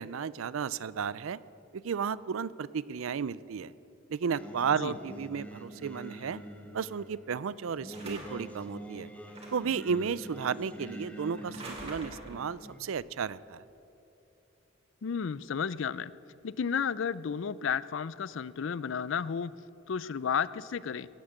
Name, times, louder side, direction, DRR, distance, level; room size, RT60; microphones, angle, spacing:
voice 1, 0.0-1.4 1.7-3.7 4.1-6.4 6.7-9.1 9.5-13.6, right 6 dB, 75° right, 19 dB, 0.4 m, -33 dB
Singing, 4.3-12.8, equal, 5° left, 1.1 m, -46 dB
sound 1, 7.9-8.5 9.3-9.8 11.4-12.5, right 1 dB, 30° right, 2.8 m, -45 dB
voice 2, 15.0-16.1 16.4-19.5 19.9-21.1, left 7 dB, 60° left, 18 dB, 0.4 m, -32 dB
17.0 x 8.8 x 7.9 m, 2.9 s
head